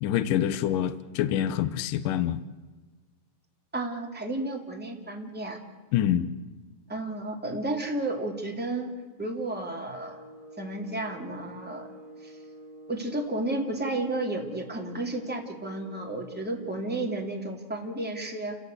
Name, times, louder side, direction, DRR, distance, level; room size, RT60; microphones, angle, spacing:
voice 1, 0.0-2.4 5.9-6.3, left 11 dB, 70° left, 12 dB, 2.1 m, -26 dB
voice 2, 3.7-5.6 6.9-10.2 10.6-11.9 12.2-12.3 12.9-18.6, right 2 dB, 5° right, 1 dB, 1.8 m, -32 dB
sound 1, 9.9-16.9, right 1 dB, 35° left, 8.6 m, -47 dB
29.5 x 17.0 x 8.0 m, 1.4 s
omnidirectional pair, 4.8 m